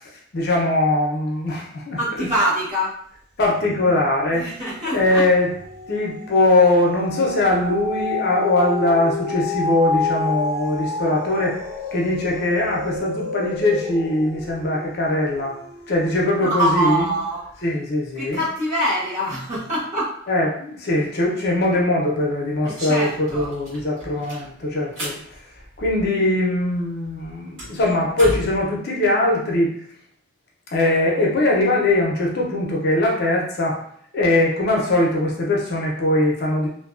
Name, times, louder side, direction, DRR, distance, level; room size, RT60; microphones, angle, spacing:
voice 1, 0.0-2.3 3.4-4.5 4.9-5.5 5.9-11.6 11.9-15.5 15.9-17.1 17.6-18.4 20.3-25.2 25.8-29.7 30.7-33.8 34.1-36.7, left 2 dB, 55° left, -2 dB, 0.6 m, -21 dB
voice 2, 2.0-2.9 4.3-5.2 16.4-17.4 18.2-20.2 22.6-23.5, right 1 dB, 35° right, -9 dB, 1.2 m, -24 dB
sound 1, 3.6-4.1 4.4-16.9 17.5-17.6, left 3 dB, 20° right, 0.8 m, -30 dB
sound 2, 22.2-22.3 22.5-26.4 26.7-28.6, equal, 70° right, 1.4 m, -35 dB
2.5 x 2.2 x 2.4 m, 0.64 s
head